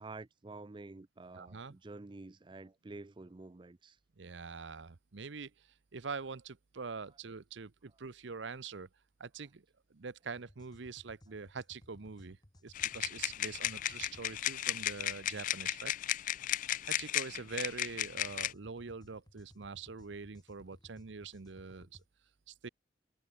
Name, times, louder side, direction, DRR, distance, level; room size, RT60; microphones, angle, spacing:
voice 1, 0.0-4.0, right 3 dB, 25° right, 0.4 m, -49 dB
voice 2, 1.3-1.8 4.2-8.9 9.2-9.6 9.9-12.4 12.6-15.9 16.9-22.0 22.5-22.7, right 4 dB, 70° right, 0.8 m, -44 dB
sound 1, 10.3-14.3 18.1-22.0, equal, 20° left, 2.3 m, -60 dB
sound 2, 12.7-18.5, left 13 dB, 40° left, 0.3 m, -35 dB
head